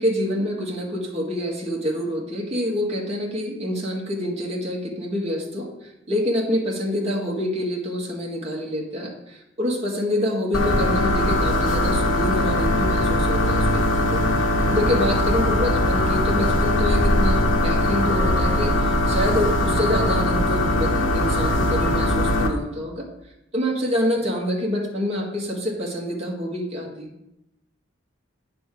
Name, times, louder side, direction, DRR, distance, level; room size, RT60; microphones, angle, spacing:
voice 1, 0.0-13.8 14.1-14.2 14.7-23.1 23.5-27.1, equal, 30° right, -2 dB, 1.5 m, -26 dB
sound 1, 10.5-22.5, left 1 dB, 75° left, 1.2 m, -21 dB
9.0 x 3.6 x 6.6 m, 0.86 s
head